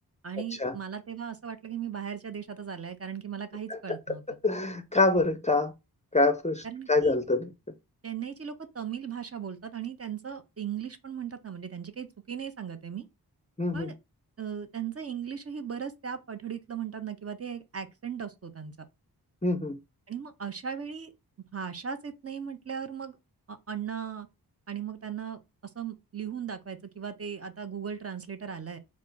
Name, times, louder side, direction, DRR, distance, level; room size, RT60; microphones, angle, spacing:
voice 1, 0.2-4.2 6.6-7.1 8.0-13.1 13.7-13.9 14.4-18.7 20.1-21.1 21.5-23.2 23.5-24.3 24.7-25.4 25.7-28.8, right 8 dB, 40° right, 0.6 m, -37 dB
voice 2, 4.4-5.7 6.1-7.5 13.6-13.9 19.4-19.8, left 2 dB, 20° left, 0.5 m, -25 dB
4.0 x 2.5 x 3.7 m
wide cardioid pair, 70°, 39 cm